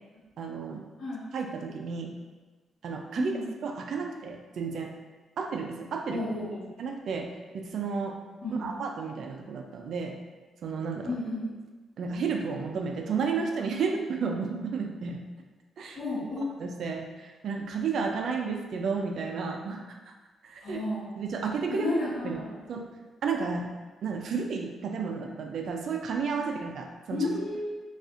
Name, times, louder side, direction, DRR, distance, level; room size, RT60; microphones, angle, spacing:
voice 1, 0.4-0.8 1.3-2.1 2.8-3.3 3.6-4.9 5.4-6.2 6.8-7.3 7.5-8.1 8.6-10.1 10.6-11.1 12.0-15.2 15.8-16.0 16.6-19.8 20.4-20.8 21.2-21.9 22.2-22.4 22.7-22.8 23.2-23.7 24.0-27.3, right 5 dB, 65° right, 3 dB, 0.4 m, -32 dB
voice 2, 6.1-6.6 8.4-8.7 11.0-11.4 15.9-16.4 20.6-21.0 21.7-22.4 27.1-27.8, left 2 dB, 75° left, -14 dB, 1.3 m, -32 dB
4.1 x 2.4 x 2.4 m, 1.3 s
cardioid pair, 110°, 0 cm